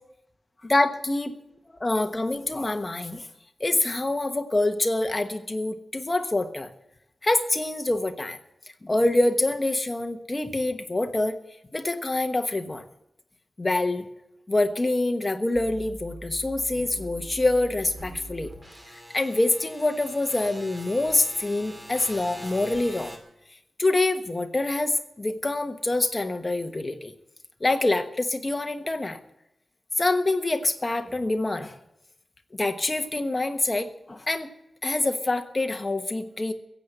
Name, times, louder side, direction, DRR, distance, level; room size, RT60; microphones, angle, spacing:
voice 1, 0.6-1.4 1.8-3.3 3.6-6.7 7.2-8.4 8.8-11.4 11.7-12.8 13.6-14.1 14.5-18.5 18.9-23.2 23.8-27.1 27.6-29.2 30.0-31.8 32.5-34.5 34.8-36.5, left 2 dB, 20° left, 6 dB, 1.2 m, -26 dB
sound 1, 15.5-23.2, right 1 dB, 15° right, 2.3 m, -43 dB
16.0 x 8.2 x 8.9 m, 0.87 s
wide cardioid pair, 175°, 0 cm